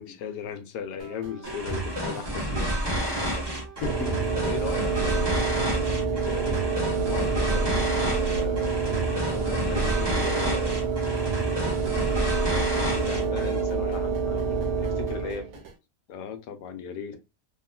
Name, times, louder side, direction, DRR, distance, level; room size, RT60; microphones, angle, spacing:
voice 1, 0.0-4.3 7.4-7.5 12.3-13.1 16.1-17.2, left 7 dB, 90° left, 1.2 m, -37 dB
sound 1, 1.0-15.8, right 4 dB, 65° right, 1.1 m, -46 dB
sound 2, 1.4-13.7, right 1 dB, 35° right, 0.4 m, -30 dB
voice 2, 2.2-2.7 4.3-6.6 7.0-8.9 9.3-11.0 13.1-15.5, left 4 dB, 60° left, 1.1 m, -38 dB
sound 3, 3.8-15.5, right 5 dB, 90° right, 1.4 m, -27 dB
3.5 x 2.2 x 2.2 m
omnidirectional pair, 1.7 m